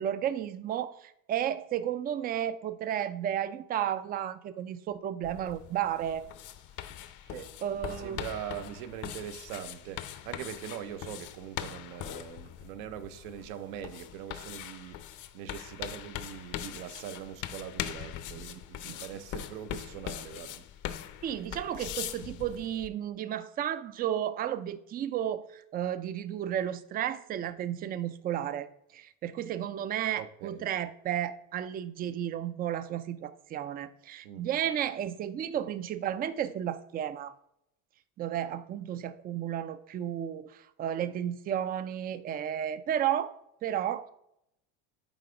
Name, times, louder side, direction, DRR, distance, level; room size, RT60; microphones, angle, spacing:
voice 1, 0.0-6.3 7.6-8.2 18.3-18.4 18.8-19.0 21.2-28.7 28.9-37.3 38.2-43.3 43.6-44.1, right 10 dB, 25° right, 0.3 m, -33 dB
sound 1, 5.2-22.9, left 11 dB, 45° left, 0.7 m, -41 dB
voice 2, 7.3-15.0 15.3-20.6 30.2-30.7 34.2-34.5, right 10 dB, 80° right, 0.9 m, -42 dB
8.9 x 3.4 x 5.0 m
supercardioid pair, 125°, 42 cm